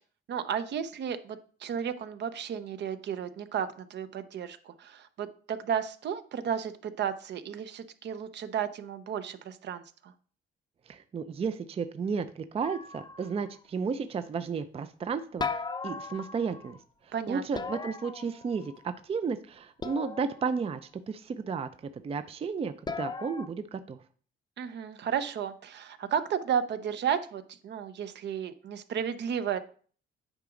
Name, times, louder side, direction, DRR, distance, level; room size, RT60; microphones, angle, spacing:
voice 1, 0.3-10.1 17.1-17.4 24.6-29.6, right 8 dB, 60° right, 11 dB, 0.7 m, -33 dB
voice 2, 10.9-15.5 15.8-16.8 17.0-24.0, right 5 dB, 30° right, 11 dB, 0.4 m, -33 dB
sound 1, 12.6-13.5 15.4-16.8 17.5-18.8 19.8-20.7 22.9-23.5, left 4 dB, 20° left, 0.6 m, -37 dB
8.9 x 4.9 x 3.8 m, 0.44 s
cardioid pair, 105°, 20 cm